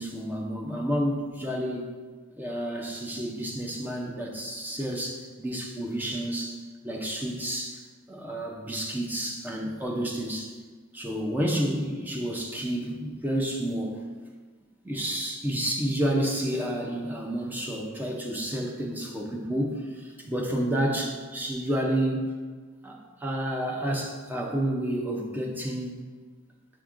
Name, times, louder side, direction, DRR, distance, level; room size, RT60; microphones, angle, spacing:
voice 1, 0.0-1.9 2.4-7.8 8.1-10.5 10.9-14.0 14.8-22.3 22.8-25.9, right 1 dB, 10° right, -1 dB, 0.4 m, -30 dB
6.1 x 3.5 x 2.5 m, 1.5 s
head